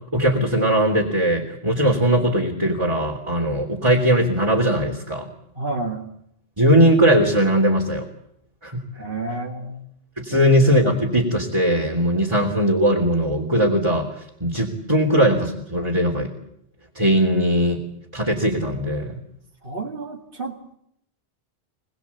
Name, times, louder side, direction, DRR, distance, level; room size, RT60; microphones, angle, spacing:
voice 1, 0.1-5.3 6.6-8.1 8.6-8.8 10.2-16.3 17.0-17.8 18.1-19.2, equal, 25° right, -1 dB, 3.4 m, -19 dB
voice 2, 5.5-6.1 9.0-9.8 10.3-10.5 19.6-20.7, right 2 dB, 50° right, -2 dB, 3.0 m, -30 dB
27.0 x 20.0 x 8.5 m, 0.74 s
omnidirectional pair, 1.2 m